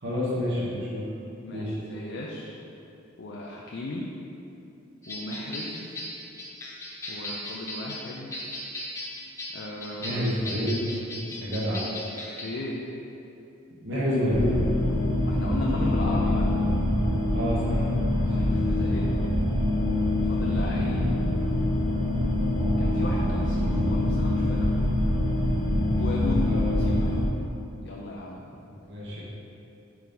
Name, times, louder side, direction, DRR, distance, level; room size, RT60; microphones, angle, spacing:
voice 1, 0.0-1.0 1.5-1.7 10.0-10.9 11.3-11.8 13.8-14.6 17.3-17.8 18.1-18.4 20.4-20.5 26.5-26.8 28.8-29.2, left 1 dB, 60° right, -6 dB, 1.4 m, -28 dB
voice 2, 1.4-2.5 3.2-4.1 5.1-5.9 7.1-8.3 9.5-10.4 12.4-12.8 15.2-16.6 18.2-19.1 20.2-21.1 22.8-24.8 26.0-27.2 27.8-28.5, left 2 dB, 55° left, -3 dB, 0.5 m, -35 dB
sound 1, 5.0-12.4, left 1 dB, 15° left, 1.1 m, -37 dB
sound 2, 14.3-27.3, left 1 dB, 30° right, 0.6 m, -25 dB
4.7 x 4.5 x 5.3 m, 2.8 s
head